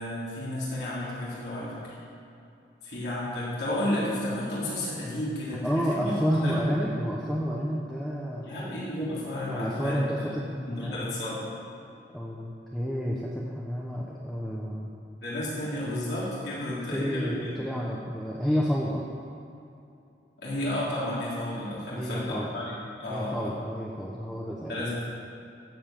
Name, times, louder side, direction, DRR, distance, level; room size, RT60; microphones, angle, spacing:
voice 1, 0.0-2.0 2.8-6.6 8.4-10.3 10.7-11.5 15.2-17.6 20.4-23.6 24.7-25.0, left 1 dB, 70° left, -8 dB, 3.2 m, -32 dB
voice 2, 5.6-9.1 9.4-11.1 12.1-14.9 16.5-19.0 22.0-22.5 23.1-24.9, equal, ahead, -5 dB, 0.8 m, -30 dB
13.5 x 5.5 x 7.5 m, 2.6 s
head